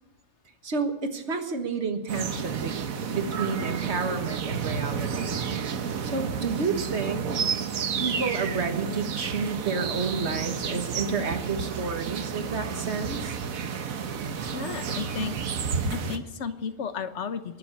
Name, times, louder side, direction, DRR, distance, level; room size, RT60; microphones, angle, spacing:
voice 1, 0.6-2.7 3.1-5.3 6.0-7.3 7.7-13.4, right 4 dB, 50° right, 6 dB, 1.7 m, -30 dB
sound 1, 2.1-16.2, right 6 dB, 80° right, 1.5 m, -31 dB
voice 2, 14.5-15.4 15.9-17.6, left 6 dB, 55° left, 11 dB, 1.2 m, -33 dB
22.5 x 7.6 x 8.5 m, 1.0 s
omnidirectional pair, 1.4 m